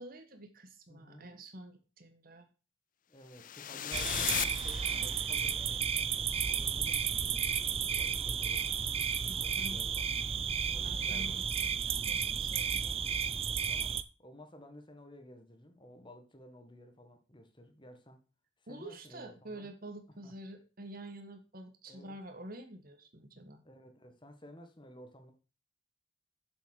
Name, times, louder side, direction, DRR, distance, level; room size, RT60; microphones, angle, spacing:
voice 1, 0.0-2.5 9.3-9.8 10.8-12.8 18.7-23.6, right 1 dB, 45° right, 1.5 m, -48 dB
voice 2, 0.9-1.4 3.1-7.5 8.0-8.6 9.2-10.0 10.7-11.4 12.6-18.2 18.6-19.7 20.2-20.3 21.8-22.1 23.6-25.3, left 1 dB, 25° left, 1.6 m, -54 dB
sound 1, 3.3-5.5, left 11 dB, 40° left, 0.5 m, -37 dB
sound 2, 3.9-14.0, right 7 dB, 30° right, 0.5 m, -33 dB
7.5 x 7.2 x 6.5 m
head